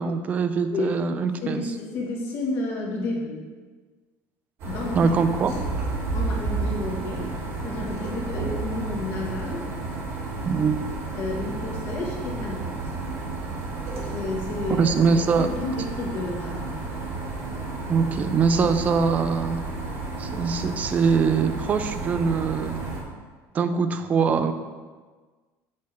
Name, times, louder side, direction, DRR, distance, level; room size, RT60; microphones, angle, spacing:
voice 1, 0.0-1.7 5.0-5.5 10.5-10.8 14.8-15.5 17.9-19.6 20.2-22.8 23.5-24.5, right 5 dB, 25° right, 9 dB, 0.5 m, -23 dB
voice 2, 0.7-1.0 1.4-3.4 4.6-5.2 5.5-5.7 6.1-7.3 7.6-9.7 11.1-12.8 14.1-14.9 15.4-16.8, left 2 dB, 40° left, -2 dB, 1.8 m, -31 dB
sound 1, 4.6-23.0, right 3 dB, 45° right, 2.0 m, -32 dB
8.4 x 4.1 x 6.7 m, 1.4 s
cardioid pair, 180°, 6 cm